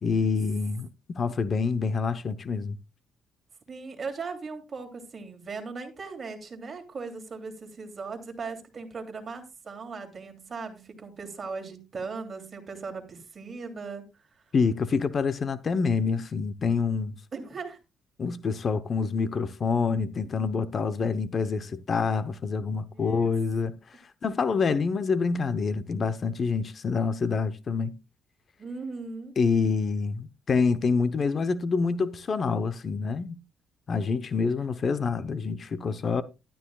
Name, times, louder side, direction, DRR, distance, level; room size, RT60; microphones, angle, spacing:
voice 1, 0.0-2.8 14.5-17.2 18.2-23.8 24.2-27.9 29.4-33.4 33.9-36.2, left 5 dB, 45° left, 0.9 m, -27 dB
voice 2, 3.7-14.4 17.3-17.8 22.9-23.1 28.6-29.4, right 4 dB, 40° right, 2.8 m, -38 dB
13.0 x 11.5 x 2.4 m
cardioid pair, 90°, 0 cm